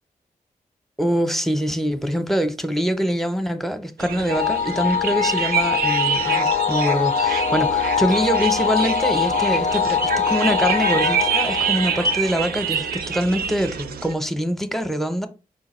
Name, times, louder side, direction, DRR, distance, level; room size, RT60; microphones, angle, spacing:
voice 1, 1.0-15.3, equal, ahead, 0.7 m, -24 dB
sound 1, 4.0-14.1, right 7 dB, 85° right, 0.4 m, -26 dB
sound 2, 4.3-12.9, left 7 dB, 50° left, 0.4 m, -23 dB
4.6 x 2.2 x 4.2 m
cardioid pair, 50°, 15 cm